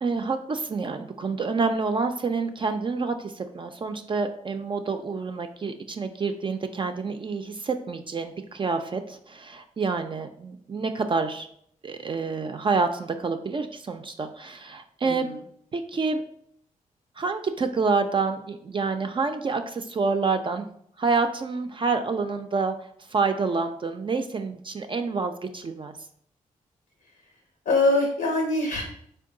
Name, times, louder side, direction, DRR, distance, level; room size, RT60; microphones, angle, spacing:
voice 1, 0.0-11.5 11.8-15.3 15.7-16.2 17.2-20.7 21.0-25.9, right 4 dB, 35° right, 6 dB, 0.3 m, -28 dB
voice 2, 15.0-15.4 27.7-28.8, left 2 dB, 85° left, 0 dB, 0.7 m, -23 dB
3.6 x 2.2 x 3.7 m, 0.66 s
cardioid pair, 55°, 14 cm